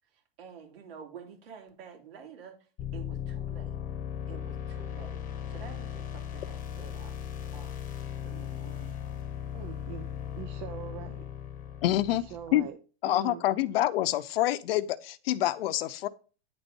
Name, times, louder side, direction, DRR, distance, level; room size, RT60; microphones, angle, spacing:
voice 1, 0.0-2.6 2.9-3.8 4.3-7.1 7.4-7.7 8.2-9.0, right 6 dB, 70° right, 2.8 m, -49 dB
sound 1, 2.8-12.6, left 9 dB, 25° left, 1.0 m, -37 dB
voice 2, 9.5-10.1 10.4-11.2 12.1-12.8 13.0-13.4, right 11 dB, 45° right, 0.7 m, -42 dB
voice 3, 11.8-12.2 12.5-12.7 13.0-16.1, left 14 dB, 70° left, 0.7 m, -27 dB
9.9 x 4.2 x 5.3 m
supercardioid pair, 150°, 31 cm